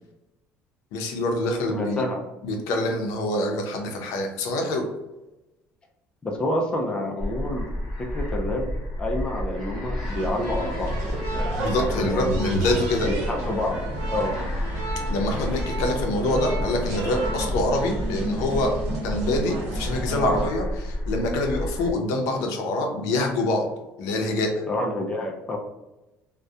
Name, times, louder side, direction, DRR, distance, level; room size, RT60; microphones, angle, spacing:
voice 1, 0.9-2.0 2.4-4.8 11.6-13.1 15.1-18.7 19.0-23.7 24.0-24.5, left 2 dB, 80° left, 2 dB, 0.5 m, -25 dB
voice 2, 1.7-2.2 6.2-7.7 8.0-8.7 9.0-10.9 12.0-14.4 15.8-16.1 24.7-25.6, left 1 dB, 15° left, 0 dB, 0.3 m, -28 dB
sound 1, 7.2-21.9, left 1 dB, ahead, 1.2 m, -31 dB
sound 2, 10.0-20.5, right 2 dB, 70° right, 0.8 m, -32 dB
2.6 x 2.1 x 2.3 m, 1.0 s
cardioid pair, 155°, 5 cm